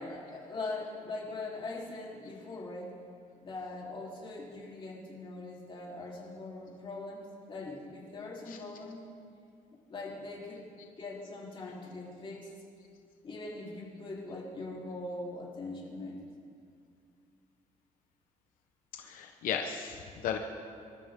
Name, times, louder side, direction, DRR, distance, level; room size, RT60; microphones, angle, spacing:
voice 1, 0.0-2.9 3.4-9.0 9.9-10.6 11.0-12.5 13.2-16.2, left 2 dB, 40° left, -4 dB, 3.8 m, -41 dB
voice 2, 19.1-20.4, left 8 dB, 85° left, 4 dB, 1.0 m, -35 dB
26.0 x 13.5 x 3.8 m, 2.3 s
cardioid pair, 135°, 14 cm